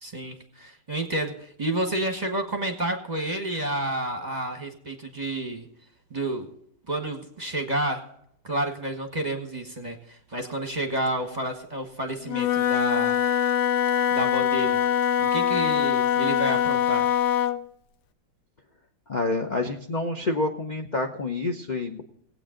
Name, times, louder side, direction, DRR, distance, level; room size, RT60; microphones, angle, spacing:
voice 1, 0.0-5.7 6.1-6.5 6.9-8.1 8.4-13.2 14.1-14.8 15.2-17.1, right 1 dB, 25° right, 4 dB, 1.2 m, -30 dB
Wind instrument woodwind instrument, 12.2-17.6, left 9 dB, 70° left, 1.2 m, -23 dB
voice 2, 19.1-22.0, left 2 dB, 35° left, 3 dB, 0.7 m, -28 dB
19.5 x 8.4 x 3.8 m, 0.72 s
omnidirectional pair, 1.9 m